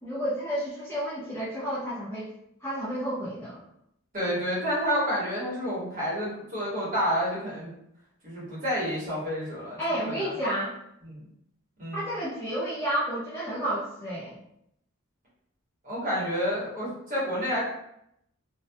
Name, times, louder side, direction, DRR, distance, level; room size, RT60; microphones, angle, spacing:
voice 1, 0.0-2.3 2.6-3.6 9.8-10.7 11.9-14.4, right 1 dB, 10° left, -10 dB, 0.7 m, -31 dB
voice 2, 4.1-7.7 8.2-9.8 10.0-10.3 11.0-11.2 11.8-12.0 15.8-17.6, equal, 40° right, -8 dB, 1.1 m, -29 dB
2.6 x 2.3 x 2.2 m, 0.76 s
head